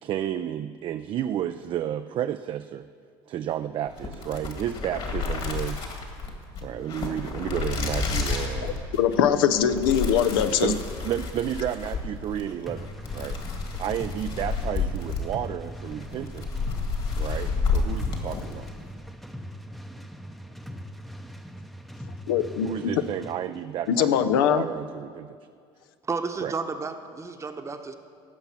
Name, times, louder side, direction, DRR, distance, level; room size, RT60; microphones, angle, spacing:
voice 1, 0.0-2.9 3.3-5.9 6.6-8.8 10.6-13.4 13.8-16.6 17.2-18.7 20.0-20.1 22.6-25.4 26.4-26.5, right 10 dB, 45° right, 10 dB, 0.3 m, -32 dB
sound 1, 3.9-18.8, left 4 dB, 50° left, 2.0 m, -31 dB
voice 2, 8.9-10.7 22.3-22.9 23.9-24.6, left 9 dB, 90° left, 9 dB, 0.5 m, -22 dB
sound 2, 12.7-23.4, equal, ahead, 0.6 m, -41 dB
voice 3, 26.0-28.0, right 4 dB, 25° right, 7 dB, 0.9 m, -32 dB
16.0 x 5.9 x 5.6 m, 2.1 s
supercardioid pair, 90°, 11 cm